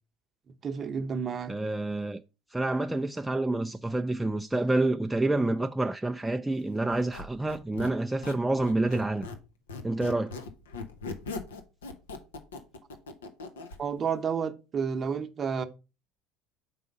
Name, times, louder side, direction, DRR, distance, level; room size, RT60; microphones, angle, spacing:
voice 1, 0.6-1.5 13.8-15.6, right 6 dB, 40° right, 0.7 m, -31 dB
voice 2, 1.5-2.2 2.5-9.3 9.8-10.3, right 2 dB, 10° right, 0.3 m, -28 dB
Squeak, 6.9-9.4 9.7-13.8, left 4 dB, 90° left, 0.7 m, -40 dB
4.8 x 3.8 x 5.2 m
hypercardioid pair, 75°, 0 cm